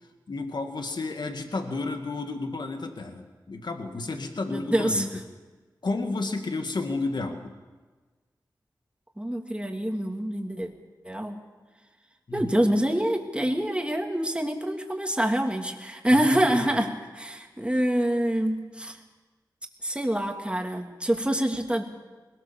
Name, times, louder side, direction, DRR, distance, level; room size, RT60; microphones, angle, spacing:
voice 1, 0.3-5.1 5.8-7.6 12.3-12.6 16.1-16.7, left 3 dB, 70° left, 5 dB, 2.1 m, -32 dB
voice 2, 4.5-5.1 9.2-10.7 11.0-11.4 12.3-16.9 17.1-19.0 19.8-21.8, right 1 dB, 15° right, 3 dB, 2.9 m, -26 dB
21.0 x 18.5 x 7.1 m, 1.3 s
cardioid pair, 45°, 8 cm